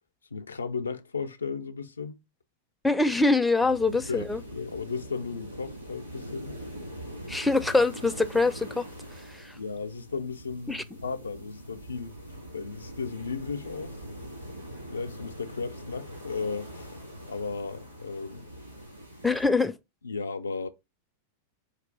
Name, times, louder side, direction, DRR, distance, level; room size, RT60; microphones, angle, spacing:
voice 1, 0.3-2.2 4.1-6.6 9.5-12.2 12.5-14.0 14.9-17.0 17.3-18.5 20.0-20.7, left 5 dB, 75° left, 0.4 m, -35 dB
voice 2, 2.8-4.4 7.3-8.9 9.4-9.5 10.7-10.8 19.2-19.7, left 3 dB, 5° left, 0.4 m, -24 dB
sound 1, 3.7-19.5, equal, 85° right, 2.3 m, -43 dB
4.7 x 2.5 x 3.7 m
figure-of-eight pair, 90°, 0 cm